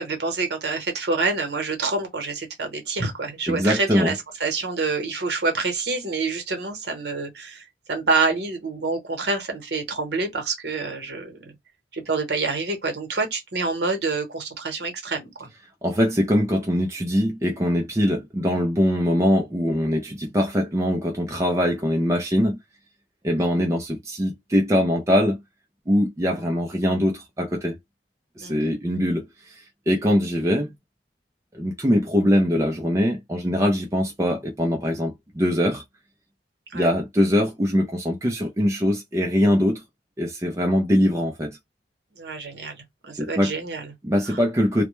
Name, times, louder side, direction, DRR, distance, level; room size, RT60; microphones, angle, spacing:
voice 1, 0.0-11.5 11.9-15.5 23.4-23.5 28.4-28.7 36.7-36.9 42.2-43.9 44.3-44.4, right 3 dB, 60° right, 0.9 m, -27 dB
voice 2, 3.5-4.1 15.8-22.6 23.2-25.4 25.9-27.8 28.4-30.7 31.5-35.8 36.7-39.8 40.2-41.6 43.2-43.5 44.0-44.8, equal, 15° right, 0.3 m, -22 dB
2.1 x 2.1 x 3.0 m
head